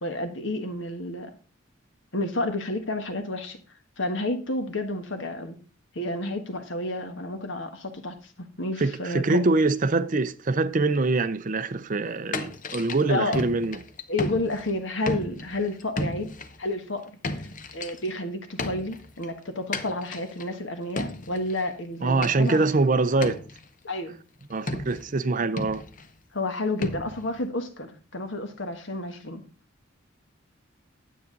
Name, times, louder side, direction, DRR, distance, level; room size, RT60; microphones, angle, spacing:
voice 1, 0.0-1.3 2.1-3.6 4.0-5.6 5.9-9.4 13.1-13.4 14.1-16.3 16.6-17.4 17.7-22.7 23.8-24.2 24.7-24.8 26.3-29.4, left 2 dB, 65° left, 1.4 m, -30 dB
voice 2, 8.8-13.8 22.0-23.4 24.5-25.8, right 3 dB, 40° right, 0.6 m, -24 dB
sound 1, 12.3-14.8 15.1-16.6 17.0-18.1 18.6-19.3 19.7-20.5 21.0-21.6 22.2-22.8 23.2-23.7 24.7-25.2 25.6-26.1 26.8-27.4, left 2 dB, 40° left, 0.8 m, -34 dB
9.5 x 8.5 x 3.9 m
head